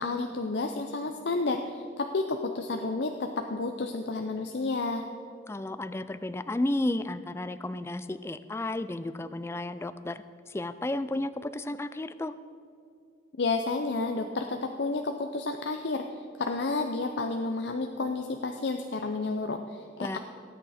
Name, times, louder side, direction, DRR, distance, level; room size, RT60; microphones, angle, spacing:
voice 1, 0.0-5.0 13.4-20.2, left 3 dB, 65° left, 5 dB, 0.6 m, -31 dB
voice 2, 5.5-12.3 20.0-20.2, left 1 dB, 15° left, 13 dB, 0.3 m, -33 dB
18.0 x 8.9 x 4.2 m, 2.4 s
head